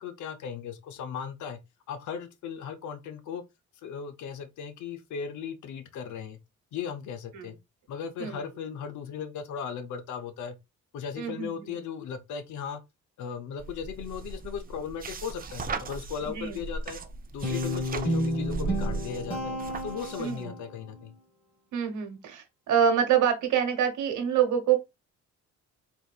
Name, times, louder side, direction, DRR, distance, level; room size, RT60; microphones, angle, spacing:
voice 1, 0.0-1.6 1.9-3.4 3.8-6.4 6.7-7.5 7.9-10.6 10.9-12.8 13.2-17.0 17.3-19.6 19.8-21.1, left 7 dB, 75° left, 0.7 m, -37 dB
voice 2, 11.2-11.6 16.4-16.6 20.2-20.5 21.7-24.8, right 8 dB, 75° right, 1.1 m, -26 dB
sound 1, 13.6-20.4, right 3 dB, 30° right, 0.5 m, -37 dB
Guitar, 17.4-20.7, equal, 20° left, 2.4 m, -31 dB
4.0 x 2.6 x 2.3 m
cardioid pair, 90°, 30 cm